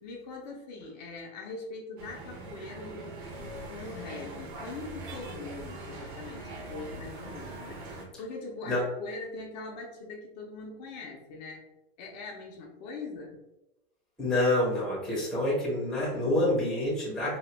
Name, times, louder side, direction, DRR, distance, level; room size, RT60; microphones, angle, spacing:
voice 1, 0.0-7.8 8.2-11.6 12.0-13.4, left 3 dB, 45° left, 0 dB, 0.6 m, -42 dB
sound 1, 2.0-8.1, right 2 dB, 55° right, 1.0 m, -42 dB
voice 2, 14.2-17.4, left 1 dB, ahead, -6 dB, 0.7 m, -27 dB
2.9 x 2.2 x 3.3 m, 0.92 s
hypercardioid pair, 145°, 31 cm